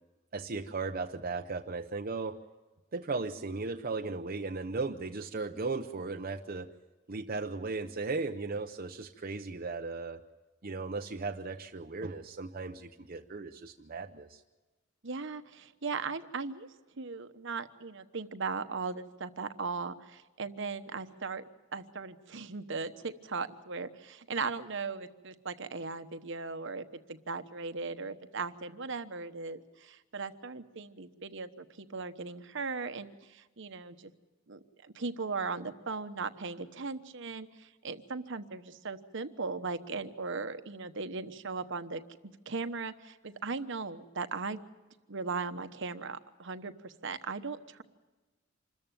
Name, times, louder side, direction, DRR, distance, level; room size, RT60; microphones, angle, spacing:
voice 1, 0.3-2.4 2.9-6.7 7.1-10.2 10.6-14.4, right 3 dB, 45° right, 4 dB, 0.7 m, -36 dB
voice 2, 15.0-16.7 17.0-21.4 21.7-34.1 34.5-42.0 42.5-44.6 45.1-47.8, right 4 dB, 65° right, 10 dB, 1.1 m, -38 dB
26.5 x 14.0 x 9.1 m, 1.2 s
head